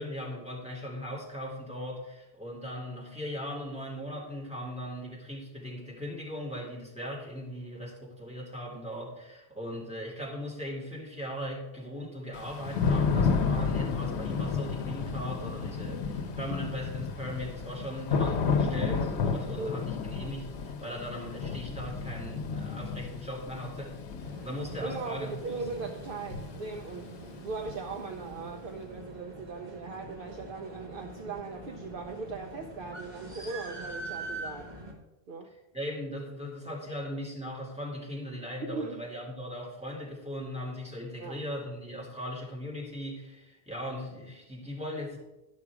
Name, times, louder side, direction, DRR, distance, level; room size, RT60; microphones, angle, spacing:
voice 1, 0.0-23.9 24.4-25.3 35.7-45.2, equal, 5° right, -4 dB, 2.6 m, -38 dB
Thunder / Rain, 12.3-28.1, left 5 dB, 85° left, 1.0 m, -32 dB
voice 2, 19.5-19.8 24.8-34.7 35.3-35.5 38.7-39.0 41.2-41.4, right 4 dB, 60° right, 4 dB, 0.8 m, -39 dB
sound 1, 24.2-34.9, right 2 dB, 40° right, 1.7 m, -44 dB
11.5 x 5.9 x 4.8 m, 1.0 s
omnidirectional pair, 1.1 m